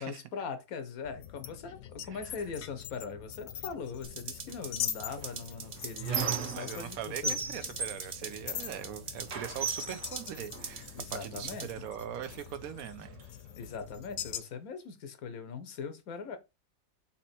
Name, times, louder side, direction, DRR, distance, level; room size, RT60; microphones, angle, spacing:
voice 1, 0.0-7.4 11.0-11.9 13.6-16.4, left 5 dB, 85° left, 1.3 m, -41 dB
sound 1, 1.0-14.4, left 10 dB, 65° left, 0.7 m, -43 dB
sound 2, 4.0-11.7, right 5 dB, 45° right, 0.9 m, -44 dB
Squeak, 5.2-6.9 7.2-8.9 9.3-11.0 11.8-11.9 12.2-13.2, right 6 dB, 60° right, 1.2 m, -36 dB
voice 2, 6.5-13.2, right 10 dB, 90° right, 1.1 m, -41 dB
4.3 x 2.9 x 4.1 m
omnidirectional pair, 1.5 m